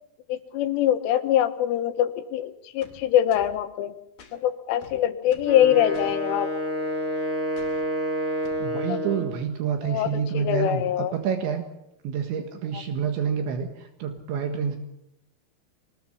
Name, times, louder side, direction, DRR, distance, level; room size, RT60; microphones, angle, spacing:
voice 1, 0.3-3.9 4.3-6.5 8.9-9.0 9.8-11.1, left 11 dB, 90° left, 9 dB, 3.7 m, -23 dB
sound 1, 2.8-3.6 4.2-4.4 4.8-5.6 5.9-6.2 7.6-7.9 8.4-8.7, left 5 dB, 55° left, 4.2 m, -49 dB
Wind instrument woodwind instrument, 5.4-9.5, equal, 10° right, 0.9 m, -28 dB
voice 2, 8.6-11.6 12.0-14.8, right 7 dB, 70° right, 5 dB, 3.8 m, -28 dB
24.5 x 20.0 x 7.2 m, 0.83 s
omnidirectional pair, 5.6 m